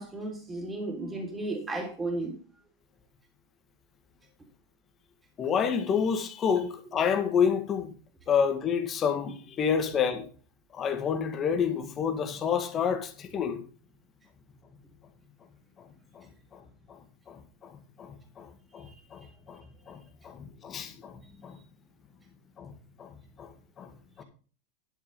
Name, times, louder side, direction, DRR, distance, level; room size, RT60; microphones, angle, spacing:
voice 1, 0.0-2.4, right 2 dB, 15° right, 3.4 m, -34 dB
voice 2, 5.4-7.9 8.3-10.3 10.7-13.6 15.8-15.9 16.1-16.6 16.9-17.0 17.3-21.6 22.6-22.7 23.0-23.5 23.8-23.9 24.2-24.3, left 7 dB, 25° left, 2.0 m, -29 dB
11.5 x 6.8 x 5.4 m
supercardioid pair, 140°, 0 cm